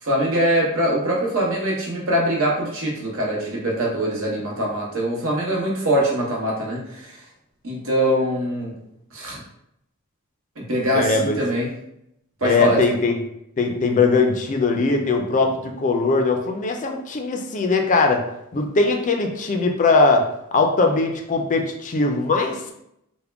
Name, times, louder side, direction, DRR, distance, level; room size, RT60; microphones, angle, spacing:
voice 1, 0.0-7.1 7.6-8.7 9.1-9.4 10.6-11.7 12.4-12.8, equal, 70° right, -3 dB, 1.1 m, -23 dB
voice 2, 10.9-11.4 12.4-13.2 13.6-18.2 18.5-20.3 20.5-22.7, left 3 dB, 35° left, 3 dB, 0.4 m, -20 dB
3.6 x 2.1 x 3.4 m, 0.78 s
head